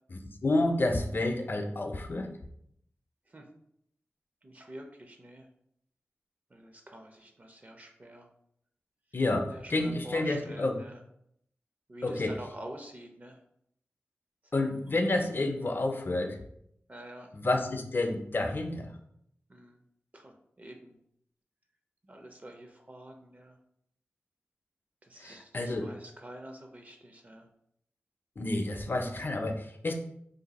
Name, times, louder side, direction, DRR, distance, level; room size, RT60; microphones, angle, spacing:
voice 1, 0.1-2.3 9.1-10.8 12.0-12.3 14.5-16.4 17.3-18.9 25.2-25.9 28.4-29.9, left 2 dB, 50° left, 4 dB, 0.5 m, -30 dB
voice 2, 4.4-5.5 6.5-8.3 9.5-11.0 11.9-13.4 14.4-14.7 16.9-17.3 19.5-19.8 20.1-21.0 22.0-23.6 25.0-27.5, right 1 dB, 35° right, 3 dB, 0.5 m, -47 dB
2.6 x 2.3 x 4.0 m, 0.72 s
wide cardioid pair, 55°, 4 cm